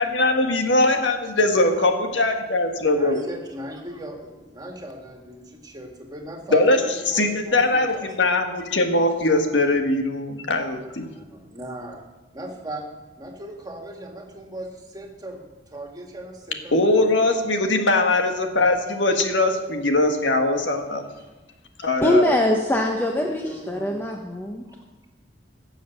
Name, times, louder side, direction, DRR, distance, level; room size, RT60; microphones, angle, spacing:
voice 1, 0.0-3.2 6.5-6.8 7.1-11.1 16.7-21.0 21.8-22.3, left 2 dB, 75° left, 5 dB, 1.6 m, -21 dB
voice 2, 2.9-8.6 11.1-12.1 12.3-12.9 13.2-17.3 21.8-21.9 22.7-22.8 23.2-24.1 24.7-24.8, right 1 dB, 20° right, 2 dB, 2.0 m, -39 dB
voice 3, 22.0-24.6, left 1 dB, 10° left, 1 dB, 0.9 m, -22 dB
16.5 x 7.3 x 6.5 m, 1.1 s
head